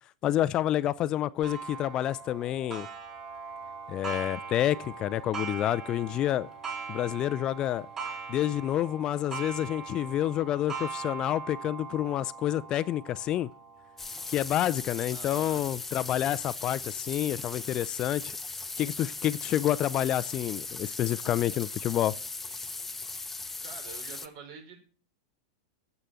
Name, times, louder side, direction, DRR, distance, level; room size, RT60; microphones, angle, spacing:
voice 1, 0.2-2.9 3.9-6.5 6.9-7.9 8.3-13.5 14.3-18.4 18.8-22.1, left 12 dB, 35° left, 0.5 m, -28 dB
Clock, 1.4-16.7 17.3-17.4 18.0-18.1 19.0-19.1, right 5 dB, 25° right, 5.0 m, -41 dB
sound 1, 14.0-24.3, left 3 dB, 10° left, 0.9 m, -38 dB
voice 2, 15.1-15.6 23.3-24.8, right 5 dB, 55° right, 4.9 m, -47 dB
9.8 x 8.1 x 7.7 m
hypercardioid pair, 100°, 2 cm